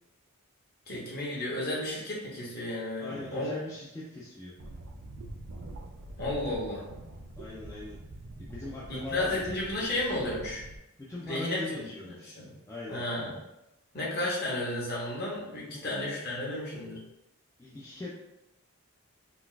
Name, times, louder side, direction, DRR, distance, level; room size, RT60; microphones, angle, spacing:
voice 1, 0.9-3.5 6.2-6.8 8.9-10.6 11.2-12.5 12.9-13.4 13.9-17.0, left 1 dB, 45° left, -5 dB, 1.0 m, -33 dB
voice 2, 3.0-4.5 7.4-8.0 8.4-9.5 11.0-13.0 15.7-15.9 17.6-18.1, left 2 dB, 15° left, -6 dB, 0.3 m, -41 dB
sound 1, 4.6-10.8, right 1 dB, 65° right, 0.4 m, -44 dB
3.9 x 2.4 x 2.2 m, 0.93 s
head